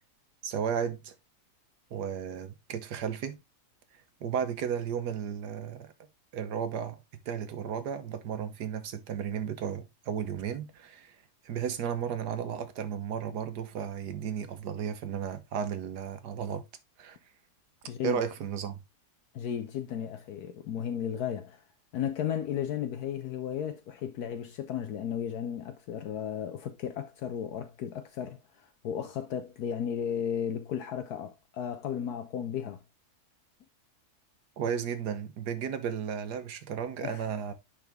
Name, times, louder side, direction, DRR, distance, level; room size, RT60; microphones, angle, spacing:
voice 1, 0.4-1.1 1.9-3.4 4.2-5.9 6.3-7.0 7.2-11.2 11.4-16.6 17.0-17.2 18.0-18.8 34.6-37.5, right 8 dB, 90° right, 1.6 m, -34 dB
voice 2, 17.8-18.2 19.3-21.6 21.9-32.8 37.0-37.3, left 9 dB, 75° left, 1.2 m, -34 dB
10.0 x 3.8 x 3.4 m
omnidirectional pair, 1.7 m